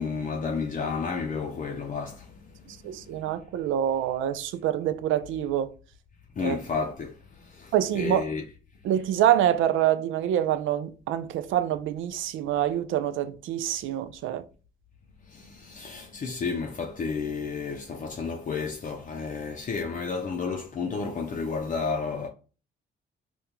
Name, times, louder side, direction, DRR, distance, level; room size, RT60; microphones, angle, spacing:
voice 1, 0.0-3.2 6.3-8.4 15.2-22.3, left 5 dB, 40° left, 0.5 m, -32 dB
voice 2, 2.8-5.7 6.4-6.6 7.7-8.3 8.8-14.4, right 11 dB, 80° right, 0.4 m, -26 dB
3.7 x 2.3 x 2.8 m
cardioid pair, 90°, 20 cm